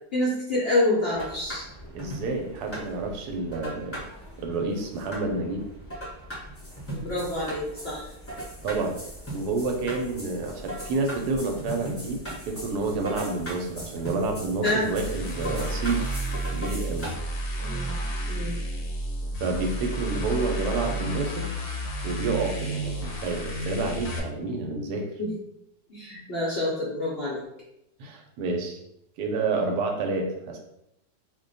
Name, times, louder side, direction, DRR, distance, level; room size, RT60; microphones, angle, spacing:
voice 1, 0.1-1.7 6.9-8.1 14.6-14.8 17.6-17.9 18.3-18.6 25.2-25.3 25.9-27.4, left 1 dB, 55° left, -5 dB, 0.7 m, -27 dB
sound 1, 1.1-17.1, equal, 15° left, 0.5 m, -39 dB
voice 2, 1.9-4.0 4.4-5.6 8.6-9.0 9.3-12.2 12.4-16.0 16.5-17.2 19.4-21.5 22.0-25.0 28.0-28.8 29.2-30.6, right 3 dB, 80° right, 2 dB, 1.1 m, -29 dB
sound 2, 14.8-24.2, right 1 dB, 70° left, 1.1 m, -31 dB
2.6 x 2.1 x 3.9 m, 0.81 s
omnidirectional pair, 1.7 m